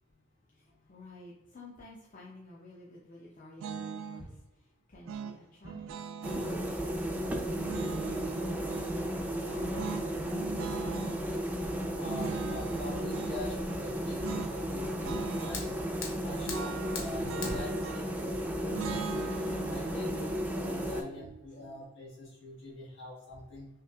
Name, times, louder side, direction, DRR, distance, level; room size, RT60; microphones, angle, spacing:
voice 1, 0.6-4.3 4.9-5.9 6.4-8.5 8.9-10.3 21.6-21.7, left 2 dB, 40° left, -5 dB, 0.6 m, -52 dB
sound 1, 3.6-4.3 5.1-6.5 7.5-8.9 9.7-11.2 12.0-13.4 14.2-14.6 14.8-15.6 16.5-18.2 18.7-21.8, right 7 dB, 90° right, 0.3 m, -41 dB
sound 2, 6.2-21.0, equal, 10° right, 0.4 m, -34 dB
voice 2, 12.0-15.8 16.2-19.2 19.7-23.7, left 2 dB, 65° left, -4 dB, 1.4 m, -45 dB
Fire, 14.9-20.9, left 3 dB, 80° left, 0.8 m, -44 dB
5.5 x 2.4 x 2.3 m, 0.88 s
head